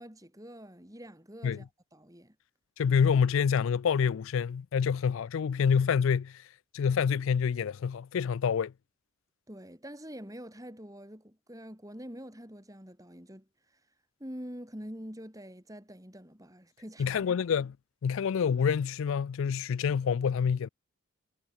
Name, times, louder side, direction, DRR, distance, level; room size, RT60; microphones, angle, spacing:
voice 1, 0.0-2.3 9.5-13.8 14.2-17.4, equal, 15° right, 4.8 m, -46 dB
voice 2, 2.8-6.4 6.7-8.7 17.0-17.7 18.0-20.7, left 6 dB, 65° left, 0.3 m, -27 dB
head